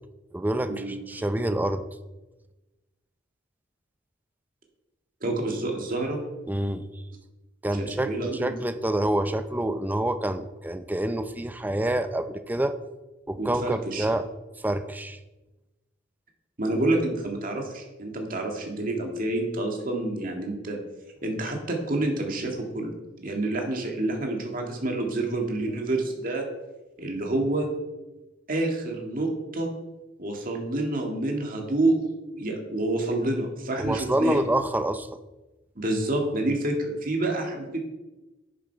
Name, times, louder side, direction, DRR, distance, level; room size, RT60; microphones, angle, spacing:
voice 1, 0.3-1.8 6.5-6.9 7.6-12.8 13.3-14.3 14.6-15.2 33.8-35.1, right 1 dB, 10° right, 10 dB, 0.5 m, -27 dB
voice 2, 5.2-6.2 7.8-8.6 13.4-14.1 16.6-20.8 21.2-22.9 23.2-26.5 27.0-27.7 28.5-29.7 30.2-34.4 35.8-37.8, right 2 dB, 50° right, 2 dB, 2.0 m, -28 dB
10.5 x 7.5 x 4.6 m, 1.1 s
head